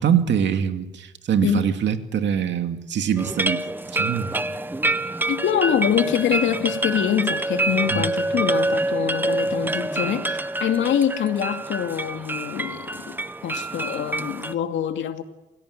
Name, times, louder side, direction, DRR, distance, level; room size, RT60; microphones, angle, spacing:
voice 1, 0.0-3.6 3.9-4.3 7.9-8.0, right 8 dB, 65° right, 2.5 m, -23 dB
sound 1, 3.2-14.5, right 2 dB, 10° right, 1.2 m, -26 dB
voice 2, 5.0-13.2 13.4-15.2, left 9 dB, 70° left, 2.5 m, -25 dB
28.0 x 16.5 x 9.9 m
cardioid pair, 90°, 20 cm